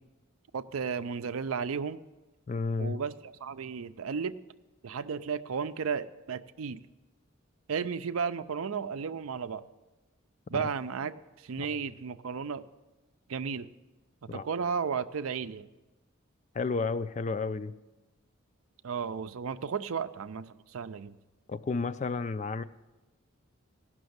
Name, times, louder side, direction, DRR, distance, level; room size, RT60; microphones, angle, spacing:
voice 1, 0.5-2.0 2.8-4.3 4.8-6.8 7.7-9.6 10.5-11.1 11.4-12.6 13.3-13.7 14.3-15.7 18.8-21.2, right 6 dB, 80° right, 12 dB, 0.5 m, -34 dB
voice 2, 2.5-3.0 10.5-10.6 11.6-11.7 14.3-14.4 16.5-17.7 21.5-22.6, left 4 dB, 35° left, 13 dB, 0.3 m, -31 dB
16.0 x 6.1 x 7.9 m, 1.1 s
head